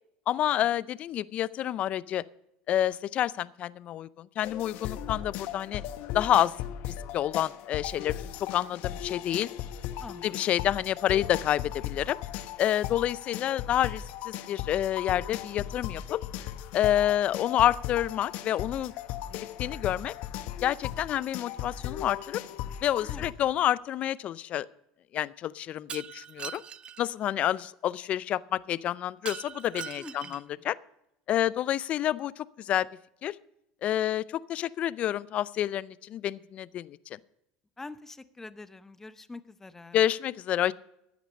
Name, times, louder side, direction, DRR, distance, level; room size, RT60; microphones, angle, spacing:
voice 1, 0.3-2.2 2.7-5.8 6.1-6.5 7.1-8.1 8.5-9.5 10.2-12.2 12.6-16.2 16.7-18.9 19.6-20.1 20.6-22.4 22.8-24.7 25.1-26.6 27.0-30.8 31.3-32.9 33.2-33.3 33.8-37.2 39.9-40.7, left 12 dB, 45° left, 19 dB, 0.5 m, -28 dB
sound 1, 4.4-23.3, left 11 dB, 65° left, 0.9 m, -37 dB
voice 2, 10.0-10.4 10.6-10.7 23.0-23.2 30.0-30.6 37.8-40.0, left 3 dB, 15° left, 14 dB, 0.7 m, -45 dB
Shatter, 25.9-27.0 29.3-30.5, right 8 dB, 35° right, 0.4 m, -41 dB
14.0 x 9.3 x 5.3 m, 0.81 s
hypercardioid pair, 95°, 3 cm